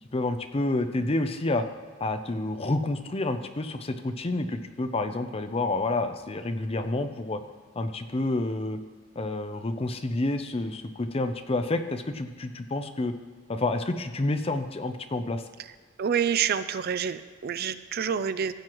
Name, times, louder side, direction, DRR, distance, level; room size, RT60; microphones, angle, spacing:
voice 1, 0.0-1.7 2.0-7.4 7.8-8.8 9.2-13.1 13.5-15.4, left 2 dB, 30° left, 8 dB, 0.6 m, -29 dB
voice 2, 16.0-18.5, right 7 dB, 50° right, 13 dB, 0.4 m, -27 dB
15.5 x 7.8 x 3.0 m, 1.5 s
head